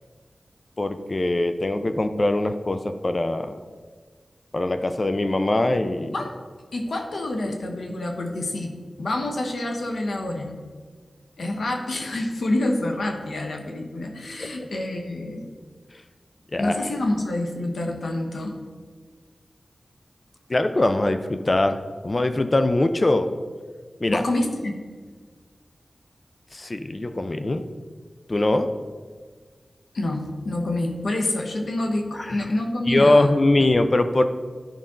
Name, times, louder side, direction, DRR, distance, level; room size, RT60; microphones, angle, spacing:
voice 1, 0.8-3.6 4.5-6.1 14.4-14.7 16.5-16.9 20.5-21.8 22.0-23.3 24.0-24.2 26.5-27.6 28.3-28.7 32.1-32.4 32.9-34.2, left 2 dB, 40° left, 8 dB, 0.5 m, -22 dB
voice 2, 6.7-10.6 11.4-15.4 16.6-18.6 24.1-24.8 29.9-33.3, left 1 dB, 85° left, 2 dB, 1.1 m, -27 dB
11.5 x 5.2 x 3.8 m, 1.5 s
cardioid pair, 55°, 0 cm